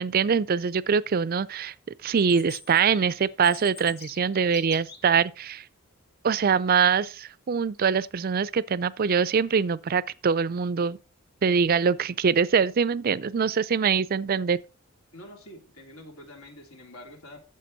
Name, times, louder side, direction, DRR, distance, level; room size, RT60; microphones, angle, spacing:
voice 1, 0.0-1.7 2.0-5.6 6.2-11.0 11.4-14.6, right 6 dB, 45° right, 0.4 m, -23 dB
Chirp tweet, 2.2-5.2, left 7 dB, 50° left, 1.8 m, -45 dB
voice 2, 15.1-17.4, left 1 dB, 80° left, 2.9 m, -46 dB
12.0 x 7.5 x 4.0 m
head